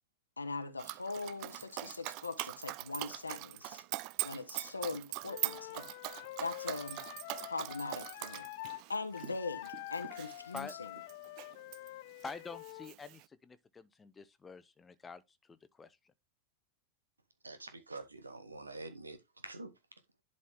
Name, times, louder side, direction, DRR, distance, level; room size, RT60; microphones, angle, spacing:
voice 1, 0.4-3.8 4.2-5.9 6.4-7.1 7.4-10.9, left 3 dB, 80° left, 0.9 m, -41 dB
Dog, 0.8-11.9 12.2-13.2, right 19 dB, 45° right, 0.4 m, -42 dB
Wind instrument woodwind instrument, 5.3-8.8 9.1-12.9, left 19 dB, 50° left, 0.3 m, -47 dB
voice 2, 12.2-16.0, left 4 dB, 15° left, 0.8 m, -47 dB
voice 3, 17.4-19.2 19.4-19.7, right 2 dB, 80° right, 1.2 m, -46 dB
11.0 x 4.1 x 3.5 m
figure-of-eight pair, 90°, 0 cm